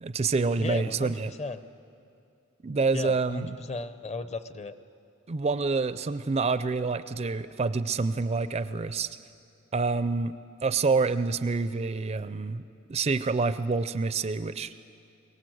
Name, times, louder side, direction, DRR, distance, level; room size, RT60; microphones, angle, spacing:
voice 1, 0.0-1.3 2.6-3.5 5.3-9.2 9.7-10.3 10.6-12.6 12.9-14.7, right 4 dB, 30° right, 13 dB, 0.4 m, -27 dB
voice 2, 0.6-1.6 2.9-4.8, left 3 dB, 30° left, 12 dB, 0.6 m, -35 dB
22.5 x 18.5 x 7.8 m, 2.5 s
head